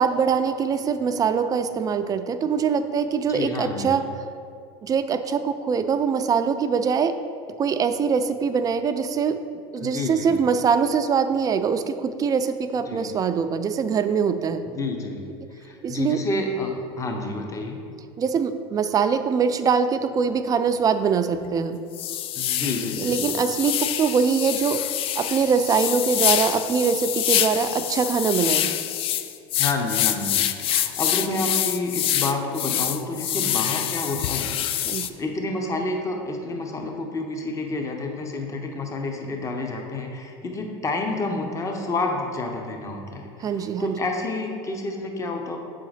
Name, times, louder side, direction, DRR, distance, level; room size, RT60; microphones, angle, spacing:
voice 1, 0.0-4.0 4.8-7.2 7.6-9.4 9.7-14.6 15.8-16.2 18.2-21.8 23.0-24.8 25.2-28.8 34.9-35.1 43.4-44.0, right 6 dB, 25° right, 10 dB, 0.4 m, -23 dB
voice 2, 3.3-4.0 9.8-10.3 12.9-13.1 14.7-15.3 15.6-17.8 22.3-23.2 29.6-45.6, left 2 dB, 25° left, 3 dB, 0.9 m, -29 dB
sound 1, 20.7-20.8 21.3-21.5 21.9-35.1, left 11 dB, 40° left, 0.4 m, -26 dB
7.0 x 3.8 x 4.9 m, 2.4 s
supercardioid pair, 105°, 14 cm